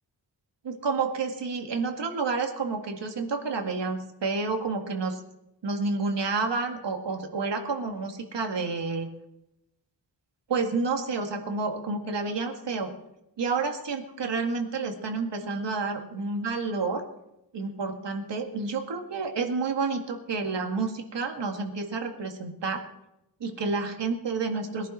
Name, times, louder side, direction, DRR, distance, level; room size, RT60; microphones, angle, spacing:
voice 1, 0.6-5.2 5.6-9.1 10.5-12.9 13.4-17.1 17.5-22.8 23.4-24.9, right 4 dB, 85° right, 4 dB, 2.0 m, -29 dB
21.0 x 11.0 x 4.3 m, 0.89 s
wide cardioid pair, 130°, 41 cm